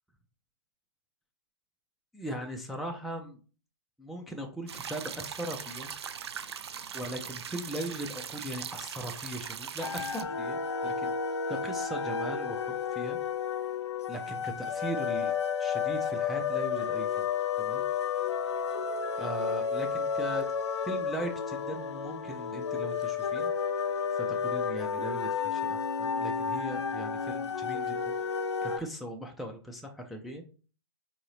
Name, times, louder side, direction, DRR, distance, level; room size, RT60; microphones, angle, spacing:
voice 1, 2.1-3.4 4.0-5.9 6.9-11.1 11.5-13.2 14.1-15.3 15.6-17.3 17.6-17.8 19.2-20.5 20.8-23.5 24.2-28.1 28.6-30.4, right 1 dB, ahead, 1 dB, 0.3 m, -39 dB
sound 1, 4.7-10.2, right 7 dB, 70° right, 0.4 m, -40 dB
sound 2, 9.8-28.8, left 6 dB, 80° left, 0.4 m, -32 dB
4.0 x 2.6 x 3.0 m, 0.37 s
figure-of-eight pair, 120°, 14 cm